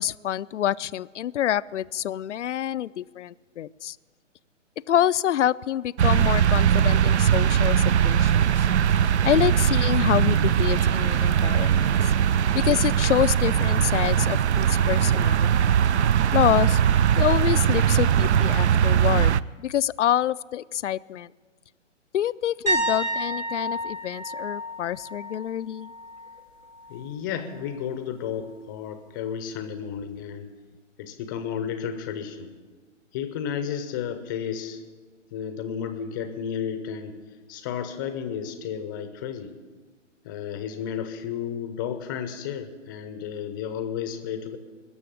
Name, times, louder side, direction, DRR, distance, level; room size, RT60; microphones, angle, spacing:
voice 1, 0.0-4.0 4.9-8.7 9.2-12.1 12.5-15.7 16.3-16.8 17.2-21.3 22.1-25.9, left 11 dB, 65° left, 18 dB, 0.5 m, -26 dB
sound 1, 6.0-19.4, right 9 dB, 60° right, 0.5 m, -20 dB
sound 2, 22.7-26.4 26.7-27.1 30.0-30.1, right 1 dB, 85° right, 6.1 m, -30 dB
voice 2, 26.9-30.5 31.0-32.5 33.1-34.8 35.3-37.2 37.5-39.5 40.2-44.6, left 8 dB, 15° left, 9 dB, 0.6 m, -32 dB
21.0 x 6.9 x 8.4 m, 1.4 s
figure-of-eight pair, 140°, 38 cm